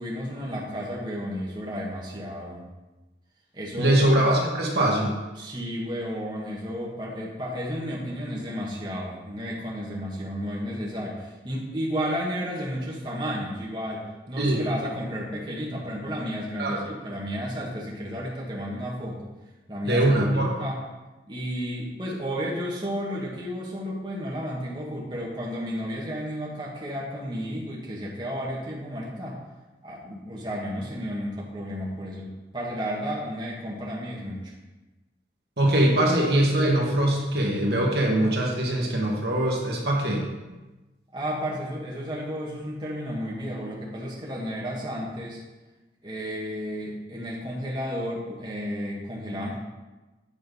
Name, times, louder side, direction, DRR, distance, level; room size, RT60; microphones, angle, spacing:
voice 1, 0.0-2.7 3.5-4.1 5.3-19.3 19.7-20.8 21.3-29.4 29.8-34.5 41.1-45.4 46.0-49.6, equal, 25° right, -5 dB, 1.5 m, -32 dB
voice 2, 3.8-5.1 14.4-14.7 16.6-16.8 19.8-20.5 35.6-40.3, right 1 dB, 65° right, -2 dB, 1.7 m, -22 dB
8.7 x 5.1 x 5.4 m, 1.1 s
head